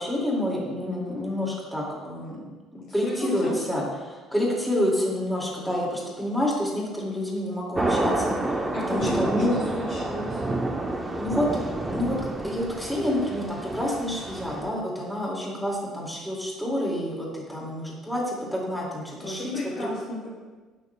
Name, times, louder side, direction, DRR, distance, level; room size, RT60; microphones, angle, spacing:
voice 1, 0.0-2.4 2.9-9.6 11.2-11.5 11.9-19.9, left 1 dB, 5° left, -4 dB, 2.4 m, -28 dB
voice 2, 3.0-3.5 8.7-10.4 19.2-20.3, left 1 dB, 55° left, -7 dB, 2.7 m, -33 dB
full thuderstorm, 7.8-14.6, right 2 dB, 15° right, 0.9 m, -29 dB
16.5 x 6.4 x 2.3 m, 1.3 s
cardioid pair, 145°, 0 cm